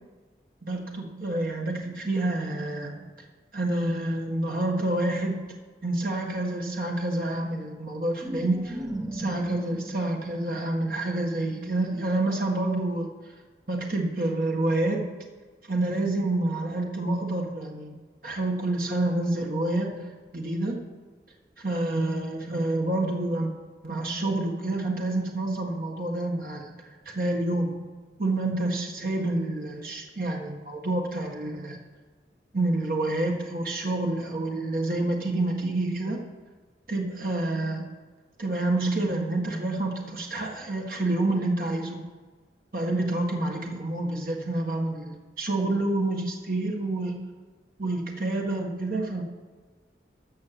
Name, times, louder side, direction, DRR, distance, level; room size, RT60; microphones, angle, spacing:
voice 1, 0.7-3.1 3.5-5.6 5.8-8.8 9.1-13.1 13.7-15.1 15.7-18.0 18.2-20.8 21.6-23.5 23.8-26.7 27.0-27.9 28.2-31.8 32.5-36.2 36.9-37.9 38.4-42.1 42.7-47.2 47.8-49.2, right 2 dB, 50° right, 1 dB, 1.6 m, -28 dB
sound 1, 8.2-12.8, right 1 dB, 20° right, 0.9 m, -39 dB
14.0 x 5.6 x 7.5 m, 1.4 s
head